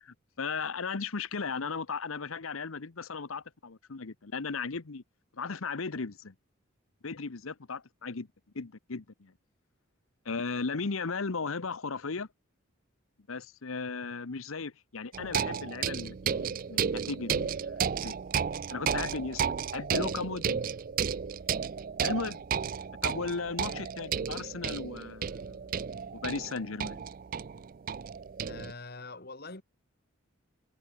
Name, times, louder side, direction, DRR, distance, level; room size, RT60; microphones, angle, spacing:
voice 1, 0.0-5.0 5.3-6.3 7.0-8.3 8.5-9.3 10.2-12.3 13.3-18.1 18.7-19.4 19.7-20.7 22.0-22.4 23.0-25.6 26.1-27.0, left 4 dB, 80° left, 1.0 m, -36 dB
sound 1, 15.1-28.7, right 7 dB, 40° right, 0.4 m, -33 dB
voice 2, 28.4-29.6, left 3 dB, 50° left, 2.2 m, -44 dB
head